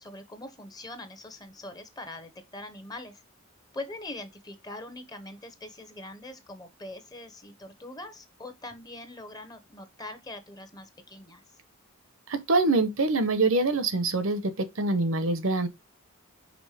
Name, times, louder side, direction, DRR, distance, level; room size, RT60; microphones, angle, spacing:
voice 1, 0.0-3.2 3.7-11.4, left 2 dB, 20° left, 1.0 m, -42 dB
voice 2, 12.3-15.7, right 3 dB, 70° right, 1.0 m, -25 dB
5.3 x 3.6 x 4.9 m
head